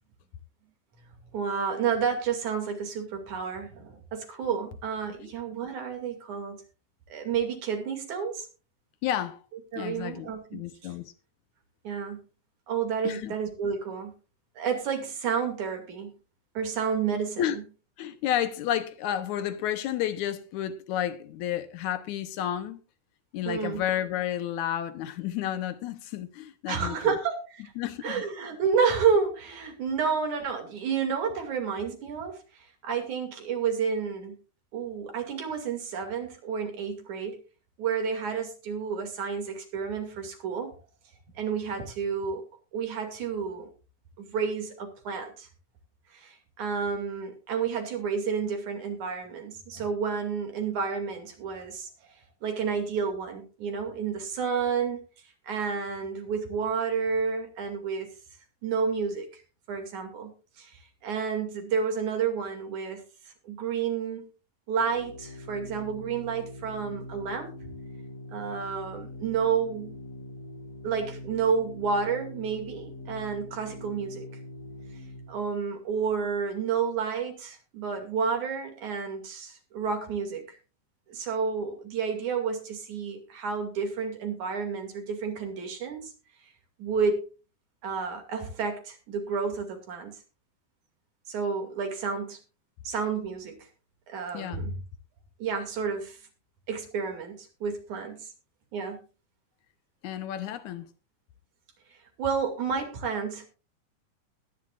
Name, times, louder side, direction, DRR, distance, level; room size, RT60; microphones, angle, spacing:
voice 1, 1.3-6.6 7.1-8.5 9.7-10.6 11.8-12.2 12.7-14.1 14.6-16.1 16.6-17.6 23.5-23.8 26.7-27.6 28.0-34.4 34.7-37.4 37.8-40.8 41.4-42.4 42.7-43.7 44.2-45.5 46.1-52.2 52.4-55.0 55.4-58.1 58.6-59.4 59.7-64.3 64.7-67.5 68.3-69.9 70.8-74.3 75.3-80.6 81.1-86.1 86.8-87.2 87.8-90.2 91.3-92.4 92.8-93.7 94.1-94.7 95.4-96.2 96.7-98.3 98.7-99.0 102.2-103.5, right 6 dB, 70° right, 3.8 m, -30 dB
voice 2, 9.0-9.4 9.8-11.1 13.0-13.3 17.4-17.6 18.0-22.8 23.3-27.1 27.8-28.2 94.3-94.7 100.0-100.9, left 11 dB, 75° left, 2.2 m, -31 dB
Organ, 64.8-75.5, left 1 dB, 35° left, 3.1 m, -43 dB
20.0 x 10.5 x 2.5 m
omnidirectional pair, 3.6 m